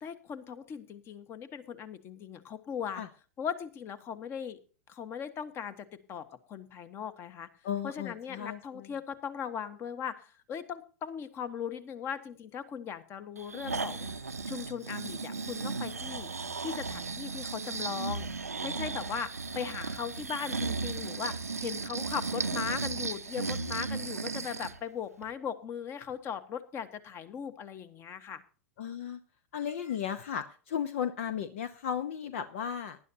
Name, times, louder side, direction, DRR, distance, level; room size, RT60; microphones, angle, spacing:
voice 1, 0.0-3.0 3.4-4.6 4.9-7.5 7.8-16.3 16.6-28.4, left 7 dB, 30° left, 12 dB, 1.4 m, -39 dB
voice 2, 7.6-8.6 28.8-29.2 29.5-33.0, left 8 dB, 60° left, 12 dB, 0.9 m, -35 dB
Breathing, 13.4-24.8 25.2-25.3, right 4 dB, 85° right, 0.7 m, -35 dB
19.0 x 11.5 x 2.8 m, 0.38 s
figure-of-eight pair, 95°, 8 cm